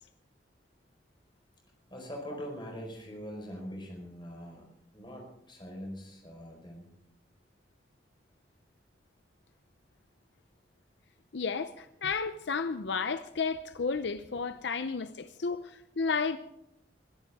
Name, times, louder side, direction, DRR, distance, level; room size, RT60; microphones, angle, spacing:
voice 1, 1.9-4.7 4.9-6.9, equal, 25° left, 4.6 m, -42 dB
voice 2, 11.3-16.4, left 5 dB, 75° left, 0.6 m, -32 dB
22.5 x 14.0 x 3.6 m
head